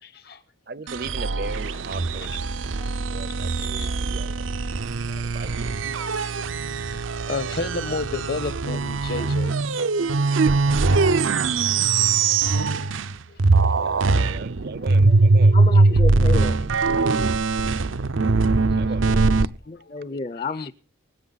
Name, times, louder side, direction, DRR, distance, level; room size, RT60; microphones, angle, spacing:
voice 1, 0.0-0.4 0.9-1.2 1.7-1.8 2.8-3.0 3.3-6.2 6.9-9.7 9.9-10.1 10.9-11.3 11.6-12.5 13.3-13.4 14.2-14.4 14.8-15.2 16.1-16.3 16.9-17.6 18.7-18.8 19.7-20.0 20.6-20.7, left 3 dB, 50° left, 1.1 m, -35 dB
voice 2, 0.7-2.3 3.1-4.6 5.2-5.7 13.7-15.6 16.3-16.7 18.7-19.5, right 3 dB, 50° right, 0.6 m, -38 dB
sound 1, 0.9-13.1 13.4-19.5, right 3 dB, 90° right, 0.7 m, -21 dB
voice 3, 15.5-16.6 19.4-20.7, left 3 dB, 30° left, 0.6 m, -31 dB
25.0 x 8.6 x 4.1 m
head